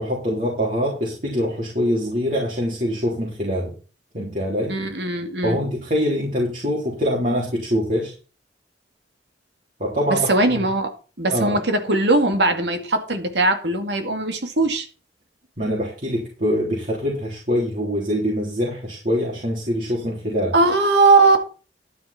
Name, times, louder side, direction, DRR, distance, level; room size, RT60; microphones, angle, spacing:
voice 1, 0.0-3.7 4.1-4.8 5.4-8.1 9.8-10.6 11.3-11.6 15.6-20.5, equal, 45° right, -4 dB, 3.6 m, -24 dB
voice 2, 4.7-5.6 10.1-10.9 11.2-14.9 20.5-21.4, right 2 dB, 80° right, 6 dB, 2.3 m, -19 dB
11.5 x 9.7 x 4.4 m, 0.35 s
head